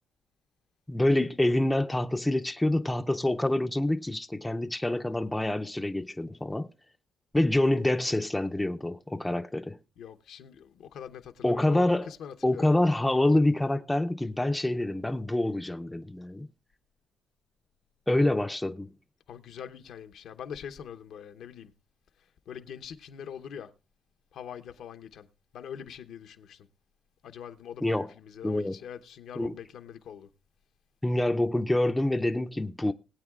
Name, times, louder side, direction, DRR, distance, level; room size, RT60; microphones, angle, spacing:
voice 1, 0.9-6.7 7.3-9.8 11.4-12.1 12.4-16.5 18.1-18.9 27.8-28.1 28.4-28.8 29.4-29.5 31.0-32.9, left 1 dB, 10° left, 0.5 m, -26 dB
voice 2, 10.0-12.7 19.3-21.7 22.5-23.7 24.3-25.3 25.5-26.7 27.2-30.3, left 8 dB, 75° left, 0.8 m, -43 dB
20.5 x 8.7 x 2.4 m
cardioid pair, 90°, 0 cm